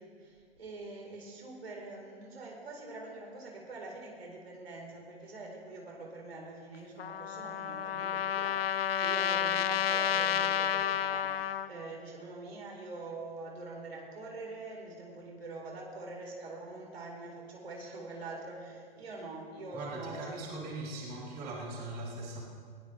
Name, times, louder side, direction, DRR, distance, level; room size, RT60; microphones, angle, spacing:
voice 1, 0.0-20.3, right 2 dB, 85° right, -2 dB, 4.8 m, -44 dB
Trumpet, 7.0-11.7, left 9 dB, 80° left, 0.8 m, -30 dB
voice 2, 19.7-22.4, right 2 dB, 30° right, -5 dB, 4.4 m, -40 dB
22.0 x 15.5 x 3.5 m, 2.1 s
hypercardioid pair, 125°, 30 cm